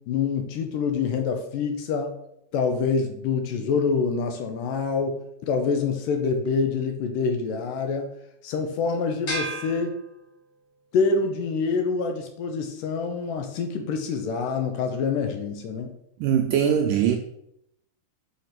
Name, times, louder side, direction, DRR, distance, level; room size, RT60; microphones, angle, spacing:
voice 1, 0.1-2.1 2.5-8.1 8.4-10.0 10.9-15.9, left 5 dB, 75° left, 5 dB, 2.2 m, -26 dB
sound 1, 9.3-10.8, right 1 dB, 40° left, 3.4 m, -34 dB
voice 2, 16.2-17.2, right 9 dB, 80° right, 4 dB, 1.9 m, -21 dB
5.9 x 5.8 x 5.8 m, 0.77 s
omnidirectional pair, 4.3 m